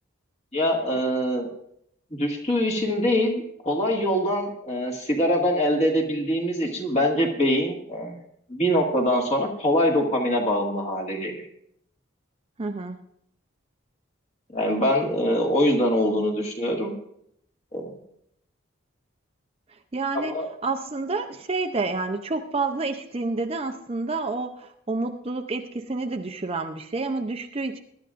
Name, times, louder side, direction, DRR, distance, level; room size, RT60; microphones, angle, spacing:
voice 1, 0.5-1.5 2.1-8.2 8.5-11.4 14.5-16.9 17.7-18.0 20.1-20.5, equal, 35° left, 1 dB, 1.9 m, -24 dB
voice 2, 12.6-13.0 19.9-20.4 20.6-27.8, right 3 dB, 30° right, 6 dB, 0.5 m, -29 dB
21.5 x 11.5 x 2.5 m, 0.72 s
head